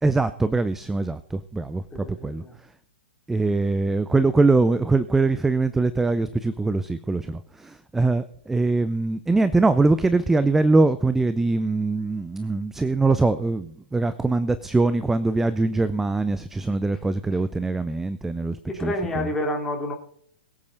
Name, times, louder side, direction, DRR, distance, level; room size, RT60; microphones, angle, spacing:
voice 1, 0.0-2.7 3.3-19.3, right 3 dB, 5° right, 14 dB, 0.6 m, -23 dB
voice 2, 1.9-2.5 18.7-19.9, left 1 dB, 10° left, 1 dB, 3.3 m, -29 dB
22.0 x 8.5 x 4.0 m, 0.62 s
figure-of-eight pair, 110°, 5 cm